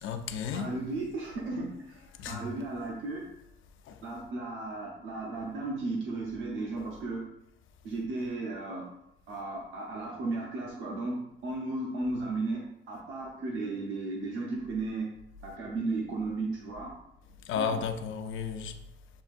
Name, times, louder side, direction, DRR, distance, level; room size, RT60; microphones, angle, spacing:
voice 1, 0.0-0.7 2.2-2.5 3.9-4.0 6.8-6.9 17.5-18.7, left 6 dB, 80° left, 0.5 m, -33 dB
voice 2, 0.5-3.3 4.0-7.3 7.8-8.9 9.3-15.1 15.4-16.9 17.6-17.8, right 2 dB, 80° right, 0.9 m, -35 dB
7.3 x 2.6 x 2.5 m
cardioid pair, 90°, 20 cm